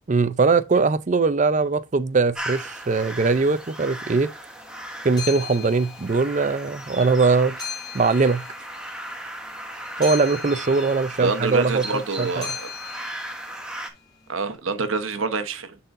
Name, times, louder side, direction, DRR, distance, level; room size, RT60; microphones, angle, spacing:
voice 1, 0.1-4.3 5.0-7.6 7.9-8.4 10.0-11.8 12.2-12.4, right 4 dB, 35° right, 0.5 m, -21 dB
sound 1, 2.3-13.9, right 1 dB, 5° right, 1.1 m, -36 dB
sound 2, 4.5-14.5, left 7 dB, 20° left, 3.0 m, -39 dB
voice 2, 11.2-12.7 14.3-15.8, right 4 dB, 85° right, 1.0 m, -26 dB
10.5 x 4.2 x 2.6 m
head